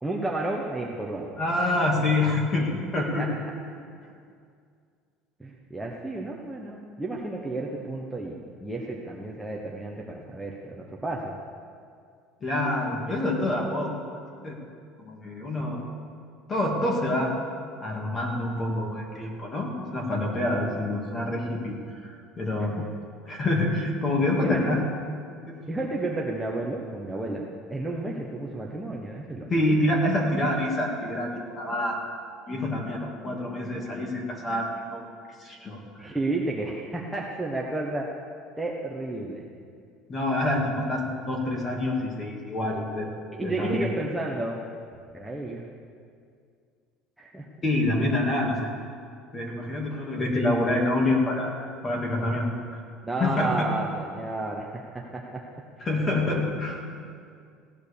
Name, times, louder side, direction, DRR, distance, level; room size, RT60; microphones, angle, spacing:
voice 1, 0.0-1.3 3.2-3.3 5.4-11.4 22.8-22.9 24.4-24.8 25.7-29.5 36.0-38.1 38.6-39.5 43.3-44.6 45.1-45.7 47.2-47.4 53.0-54.8 55.1-55.4, right 2 dB, 5° right, -2 dB, 1.1 m, -32 dB
voice 2, 1.4-3.3 4.0-4.1 12.4-14.6 15.0-15.9 16.5-17.3 17.8-22.8 23.3-24.8 25.5-25.6 29.5-32.0 32.5-35.1 35.4-36.1 40.1-43.1 43.4-43.9 47.6-48.7 49.3-51.5 51.8-52.8 53.2-53.7 55.8-56.8, left 1 dB, 25° left, 0 dB, 2.7 m, -27 dB
16.5 x 11.0 x 6.9 m, 2.2 s
cardioid pair, 150°, 0 cm